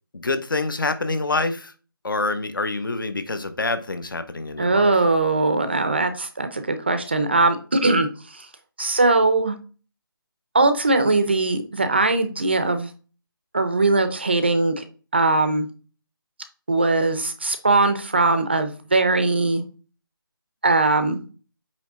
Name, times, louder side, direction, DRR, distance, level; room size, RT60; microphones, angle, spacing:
voice 1, 0.1-1.7 2.0-4.9, left 3 dB, 60° left, 10 dB, 1.0 m, -26 dB
voice 2, 4.6-8.5 8.8-9.5 10.5-12.9 13.5-14.8 15.1-15.7 16.7-19.6 20.6-21.2, right 3 dB, 30° right, 9 dB, 0.5 m, -20 dB
8.6 x 3.2 x 3.6 m, 0.37 s
figure-of-eight pair, 175°, 12 cm